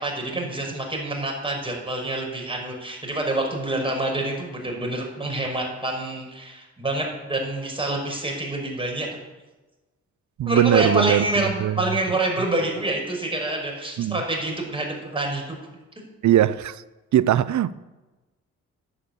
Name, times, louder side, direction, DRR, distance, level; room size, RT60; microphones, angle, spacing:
voice 1, 0.0-9.1 10.5-15.6, right 1 dB, 15° right, 5.5 m, -27 dB
voice 2, 10.4-11.3 11.6-12.0 14.0-14.2 16.2-16.8 17.1-17.7, right 12 dB, 55° right, 0.7 m, -20 dB
11.0 x 9.4 x 8.4 m
hypercardioid pair, 45°, 35 cm